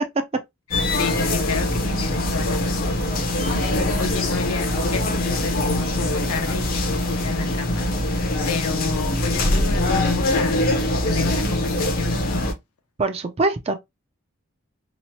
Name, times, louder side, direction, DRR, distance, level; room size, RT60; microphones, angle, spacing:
sound 1, 0.7-12.5, left 1 dB, 40° left, 0.5 m, -23 dB
voice 1, 1.0-3.1 4.0-7.9 8.5-12.5, left 4 dB, 85° left, 0.6 m, -30 dB
voice 2, 13.0-13.8, right 3 dB, 25° right, 0.3 m, -23 dB
2.9 x 2.0 x 2.6 m
head